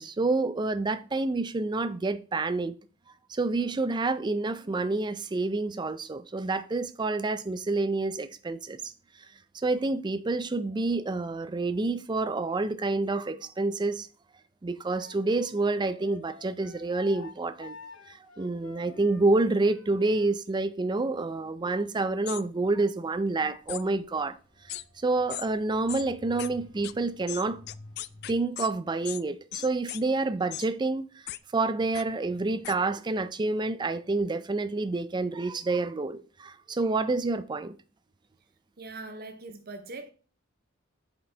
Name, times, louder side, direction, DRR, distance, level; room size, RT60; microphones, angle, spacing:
voice 1, 0.0-2.8 3.3-8.9 9.5-14.1 14.6-17.8 18.1-24.4 25.0-27.6 28.3-31.0 31.5-37.8, right 3 dB, 20° right, 0.4 m, -28 dB
Wind instrument woodwind instrument, 14.9-20.3, left 5 dB, 85° left, 1.2 m, -49 dB
sound 1, 22.3-22.4 23.7-23.8 24.7-24.8 25.3-25.5 25.9-26.0 26.4-26.5 26.8-26.9 27.3-28.7 29.0-29.2 29.5-30.0 30.5-30.7 31.3-31.4 31.9-32.0 32.6-32.7, left 15 dB, 55° left, 0.3 m, -37 dB
sound 2, 23.3-28.3, left 1 dB, 25° left, 2.1 m, -52 dB
voice 2, 38.8-40.1, right 2 dB, 50° right, 0.7 m, -41 dB
8.3 x 5.1 x 3.3 m
head